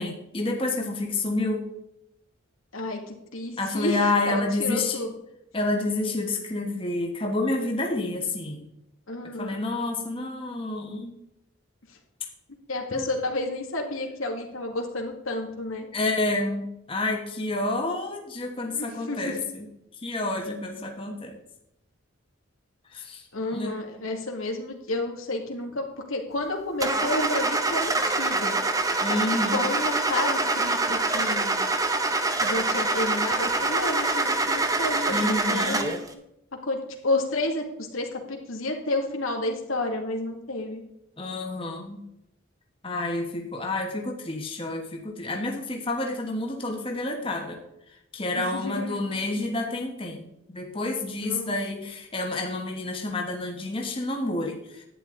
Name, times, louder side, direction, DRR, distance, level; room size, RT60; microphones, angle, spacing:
voice 1, 0.0-1.7 3.6-5.0 5.5-8.7 9.4-11.1 12.9-13.1 15.9-19.6 20.0-21.3 22.9-23.2 23.5-23.7 29.0-29.6 35.1-35.8 41.2-42.0 42.8-47.6 48.1-54.8, left 2 dB, 25° left, 1 dB, 1.3 m, -29 dB
voice 2, 2.7-5.1 9.1-9.7 12.7-15.9 18.7-19.4 23.3-28.5 29.1-29.2 29.5-31.6 32.4-36.0 36.7-40.8 48.3-49.1 51.2-51.6, left 2 dB, 85° left, 2 dB, 2.1 m, -31 dB
Car / Engine starting, 26.8-36.1, right 2 dB, 15° right, 0.8 m, -25 dB
11.5 x 9.4 x 3.8 m, 0.84 s
head